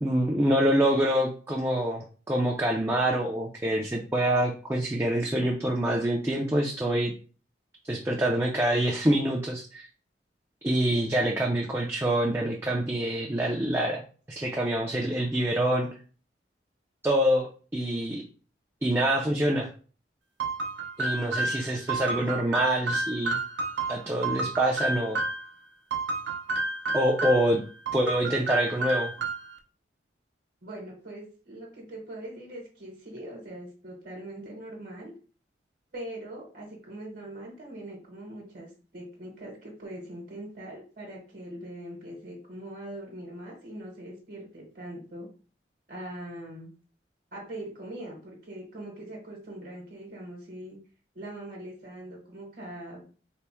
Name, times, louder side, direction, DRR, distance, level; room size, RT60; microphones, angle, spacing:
voice 1, 0.0-7.1 7.8-9.9 10.6-15.9 17.0-18.2 18.8-19.7 21.0-23.4 23.9-25.2 26.9-27.6 27.9-29.1, right 1 dB, 15° right, -1 dB, 0.4 m, -26 dB
sound 1, 20.4-25.5 25.9-27.5 27.9-29.6, right 2 dB, 70° right, 0.5 m, -30 dB
voice 2, 30.6-35.1 35.9-45.3 45.9-46.7 47.3-50.8 51.1-53.2, right 1 dB, 50° right, -2 dB, 1.0 m, -42 dB
3.3 x 2.0 x 4.2 m, 0.39 s
head